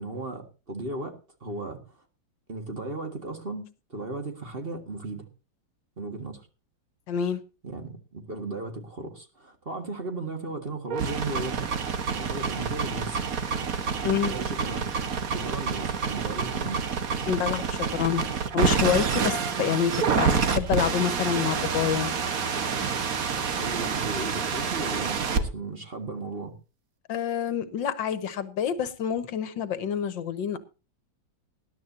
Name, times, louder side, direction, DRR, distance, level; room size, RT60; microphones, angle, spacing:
voice 1, 0.0-2.0 2.5-5.3 6.0-6.5 7.6-11.7 12.2-13.2 14.2-16.8 23.6-26.5, right 2 dB, 30° right, 5 dB, 1.8 m, -36 dB
voice 2, 7.1-7.4 14.0-14.3 17.3-18.2 18.5-22.1 27.1-30.6, left 8 dB, 75° left, 14 dB, 1.8 m, -27 dB
sound 1, 10.9-25.4, right 6 dB, 50° right, 1.5 m, -28 dB
20.0 x 11.5 x 2.7 m, 0.31 s
omnidirectional pair, 2.1 m